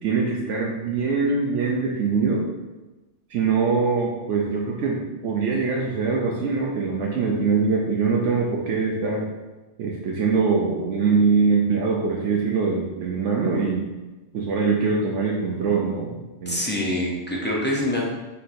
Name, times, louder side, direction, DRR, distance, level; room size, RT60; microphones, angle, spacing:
voice 1, 0.0-2.5 3.3-9.3 9.8-13.9 14.3-16.1 16.4-16.6, right 4 dB, 80° right, -3 dB, 0.9 m, -23 dB
voice 2, 16.5-18.2, left 1 dB, 15° left, -4 dB, 0.4 m, -25 dB
5.6 x 2.9 x 2.6 m, 1.1 s
omnidirectional pair, 1.2 m